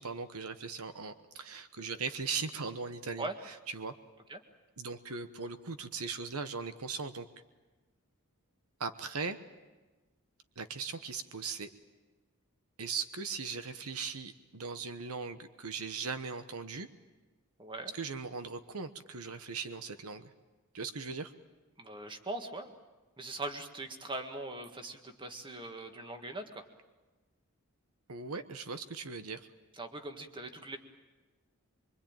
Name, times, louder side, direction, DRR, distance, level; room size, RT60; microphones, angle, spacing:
voice 1, 0.0-3.9 4.8-7.3 8.8-9.4 10.6-11.7 12.8-16.9 17.9-20.3 20.7-21.3 28.1-29.5, right 5 dB, 75° right, 10 dB, 1.1 m, -39 dB
voice 2, 17.6-17.9 21.8-22.7 23.2-26.6 29.8-30.8, right 2 dB, 20° right, 5 dB, 1.8 m, -41 dB
24.5 x 24.0 x 8.9 m, 1.2 s
head